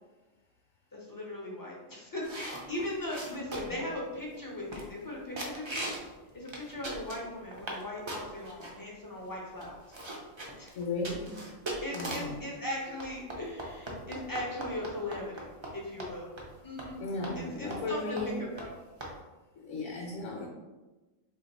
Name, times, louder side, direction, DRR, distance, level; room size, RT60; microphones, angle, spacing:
voice 1, 0.9-5.8 6.3-10.0 10.6-10.7 11.8-16.3 16.6-17.0 17.3-18.7, left 1 dB, 30° left, -3 dB, 0.3 m, -39 dB
sound 1, 2.2-3.9 4.3-4.4 4.7-5.1 5.4-6.1 6.5-7.8 8.1-8.7 9.3-9.4 9.6-12.4 13.0-15.7 16.0-16.1 16.4-16.5 16.8-16.9 17.2-17.4 17.7-17.9 18.2-18.3 18.6-18.7 19.0-19.1, right 1 dB, 50° right, 0.3 m, -39 dB
voice 2, 10.7-11.4 11.9-12.5 17.0-18.5 19.6-20.5, left 2 dB, 65° left, 0 dB, 0.9 m, -35 dB
2.9 x 2.7 x 4.1 m, 1.2 s
omnidirectional pair, 1.4 m